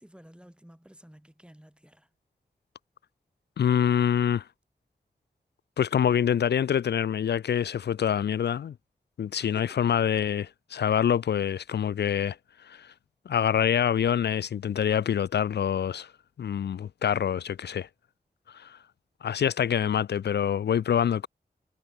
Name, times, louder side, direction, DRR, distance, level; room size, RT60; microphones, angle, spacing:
voice 1, 0.0-2.1 9.4-9.8, equal, 5° right, 3.4 m, -52 dB
voice 2, 3.6-4.4 5.8-8.7 9.2-12.4 12.6-12.9 13.3-16.1 16.4-17.9 18.5-18.8 19.2-21.3, left 8 dB, 80° left, 0.4 m, -26 dB
cardioid pair, 40°, 17 cm